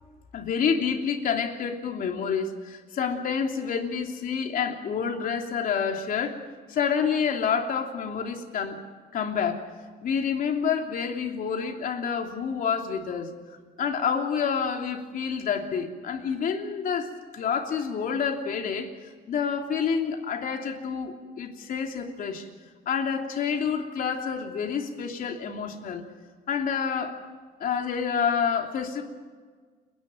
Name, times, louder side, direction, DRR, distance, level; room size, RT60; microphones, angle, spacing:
voice 1, 0.3-6.4 6.7-8.8 9.1-9.7 10.0-13.3 13.8-18.9 19.3-22.4 22.9-26.0 26.5-27.2 27.6-29.0, left 6 dB, 55° left, 3 dB, 3.0 m, -28 dB
30.0 x 11.0 x 9.1 m, 1.5 s
cardioid pair, 110°, 17 cm